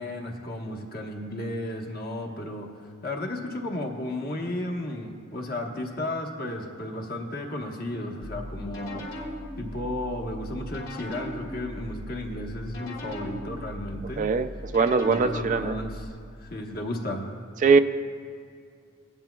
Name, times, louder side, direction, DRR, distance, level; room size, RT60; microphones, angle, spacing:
voice 1, 0.0-2.7 3.0-9.2 9.6-14.2 15.0-16.1 16.4-17.3, left 1 dB, 50° left, 1 dB, 1.2 m, -33 dB
sound 1, 8.2-16.1, left 1 dB, 70° left, 2.6 m, -39 dB
voice 2, 14.2-15.7 17.6-17.8, right 4 dB, 35° right, 9 dB, 0.3 m, -21 dB
18.5 x 10.5 x 2.3 m, 2.3 s
head